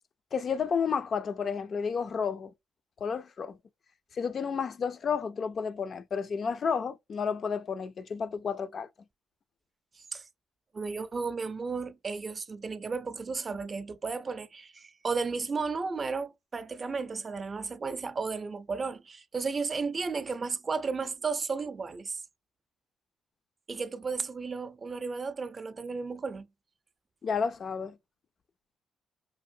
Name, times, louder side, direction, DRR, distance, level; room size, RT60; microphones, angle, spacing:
voice 1, 0.3-2.5 3.0-3.6 4.1-8.9 27.2-27.9, left 6 dB, 50° left, 0.4 m, -31 dB
voice 2, 10.7-22.2 23.7-26.5, right 4 dB, 35° right, 0.6 m, -34 dB
5.1 x 2.6 x 2.6 m
cardioid pair, 90°, 0 cm